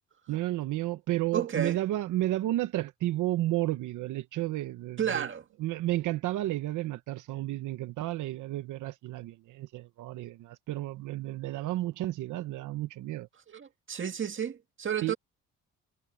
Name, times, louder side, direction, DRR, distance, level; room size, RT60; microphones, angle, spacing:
voice 1, 0.3-5.3 5.6-13.3 15.0-15.1, right 15 dB, 85° right, 0.9 m, -32 dB
voice 2, 1.3-1.8 5.0-5.4 13.5-15.1, right 8 dB, 40° right, 1.9 m, -32 dB
cardioid pair, 90°, 30 cm